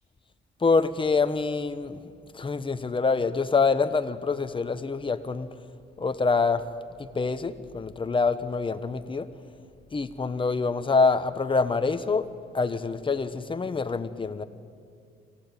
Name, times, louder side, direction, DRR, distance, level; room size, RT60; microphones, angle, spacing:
voice 1, 0.6-2.0 2.4-5.5 6.0-6.6 7.1-9.3 9.9-12.2 12.5-14.4, left 4 dB, 25° left, 10 dB, 1.1 m, -25 dB
25.0 x 15.5 x 9.0 m, 2.3 s
cardioid pair, 90°, 20 cm